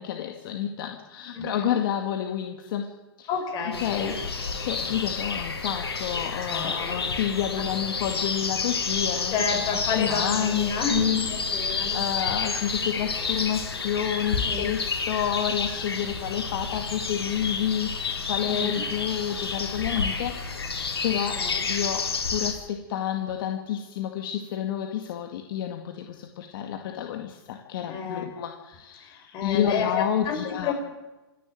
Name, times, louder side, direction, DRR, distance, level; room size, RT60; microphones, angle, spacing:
voice 1, 0.0-2.9 3.2-3.3 3.8-4.1 4.6-9.3 9.7-20.3 21.0-21.4 21.7-30.7, left 10 dB, 60° left, 4 dB, 2.1 m, -29 dB
voice 2, 1.3-1.8 3.3-4.1 6.5-7.1 9.3-12.0 12.3-12.4 14.4-14.7 18.4-18.8 21.3-21.6 27.9-28.3 29.0-30.7, left 5 dB, 35° left, 3 dB, 5.9 m, -31 dB
sound 1, 3.7-22.5, left 5 dB, 90° left, 3.7 m, -30 dB
27.0 x 11.0 x 9.2 m, 1.1 s
hypercardioid pair, 120°, 13 cm